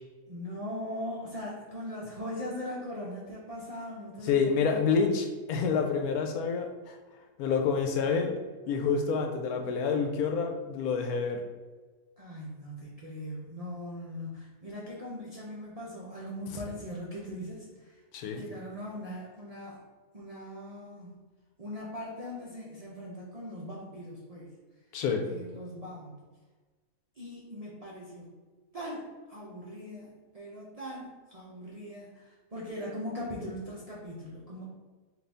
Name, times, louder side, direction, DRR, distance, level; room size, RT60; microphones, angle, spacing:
voice 1, 0.3-4.8 12.2-18.0 18.3-19.8 20.1-21.1 21.6-24.5 25.3-26.2 27.2-28.3 28.7-34.7, left 1 dB, 55° right, -6 dB, 0.4 m, -40 dB
voice 2, 4.2-7.0 7.4-8.3 8.7-11.4 18.1-18.4 24.9-25.2, left 5 dB, 85° left, 4 dB, 1.1 m, -28 dB
3.9 x 2.7 x 3.4 m, 1.3 s
omnidirectional pair, 1.6 m